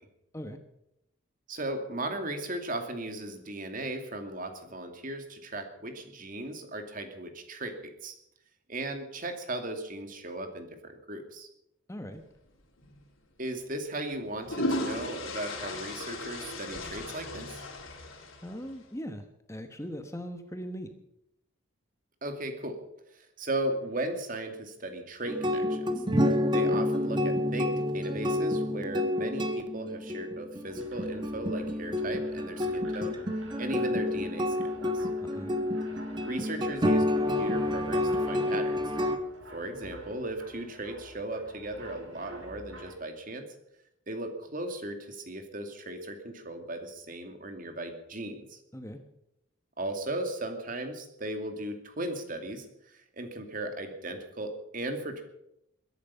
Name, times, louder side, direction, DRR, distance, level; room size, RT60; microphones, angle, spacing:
voice 1, 1.5-8.1 8.7-11.5 13.4-17.6 22.2-22.8 23.1-26.0 26.5-33.2 33.6-35.1 36.2-38.8 39.5-43.5 44.1-48.6 49.8-55.2, right 1 dB, 40° right, 6 dB, 2.5 m, -37 dB
voice 2, 11.9-12.2 18.4-20.9 35.2-35.5 48.7-49.0, equal, 15° left, 7 dB, 1.2 m, -40 dB
sound 1, 12.8-13.0 14.1-18.7, left 1 dB, 85° left, 4.0 m, -36 dB
sound 2, 25.3-39.2, left 1 dB, 25° right, 1.4 m, -29 dB
sound 3, 30.6-42.9, right 1 dB, 75° right, 5.9 m, -50 dB
22.5 x 11.0 x 5.6 m, 0.81 s
head